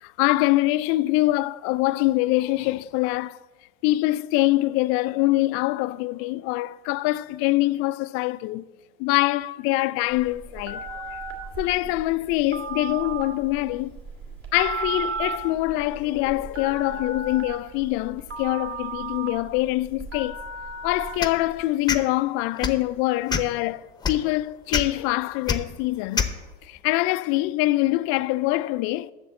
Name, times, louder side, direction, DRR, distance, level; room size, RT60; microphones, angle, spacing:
voice 1, 0.0-3.4 3.8-8.7 9.0-10.9 11.6-13.9 14.5-20.4 20.8-26.3 26.6-29.1, left 18 dB, 45° left, 0.4 m, -24 dB
Telephone, 10.1-21.5, right 4 dB, 45° right, 2.3 m, -34 dB
sound 1, 21.2-21.4 21.9-22.0 22.6-22.8 23.3-23.6 24.0-24.2 24.7-24.8 25.5-25.6 26.1-26.3, left 5 dB, 15° left, 0.8 m, -24 dB
7.5 x 6.7 x 7.6 m
hypercardioid pair, 90°, 32 cm